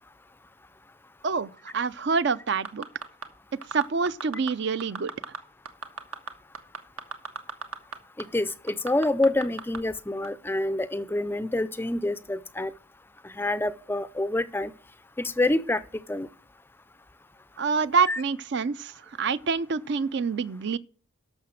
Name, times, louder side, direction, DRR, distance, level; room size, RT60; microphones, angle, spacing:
voice 1, 1.2-2.8 3.7-5.1 17.6-20.8, right 5 dB, 55° right, 0.5 m, -26 dB
sound 1, 2.5-3.2 3.6-4.5 4.8-5.4 5.6-7.9 8.2-8.3 8.7-9.8 10.2-10.3, right 5 dB, 85° right, 1.4 m, -35 dB
voice 2, 8.2-12.7 13.2-14.7 15.2-15.8 16.1-16.3 18.1-18.2, left 2 dB, 10° left, 0.4 m, -27 dB
11.5 x 6.6 x 6.3 m
head